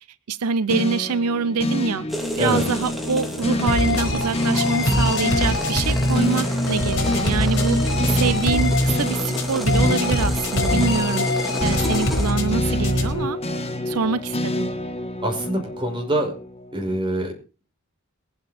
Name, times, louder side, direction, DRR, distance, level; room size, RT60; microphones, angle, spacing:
voice 1, 0.3-2.1 2.4-7.8 8.1-11.3 11.6-13.4 13.9-14.7, right 5 dB, 90° right, 16 dB, 0.6 m, -25 dB
sound 1, 0.7-17.0, left 1 dB, 30° left, 1.5 m, -28 dB
sound 2, 2.1-12.3, equal, ahead, 2.9 m, -33 dB
sound 3, 3.7-13.3, left 1 dB, 60° left, 5.0 m, -23 dB
voice 2, 15.2-16.3 16.7-17.3, right 1 dB, 25° right, 1 dB, 5.7 m, -24 dB
22.5 x 8.8 x 4.3 m, 0.34 s
head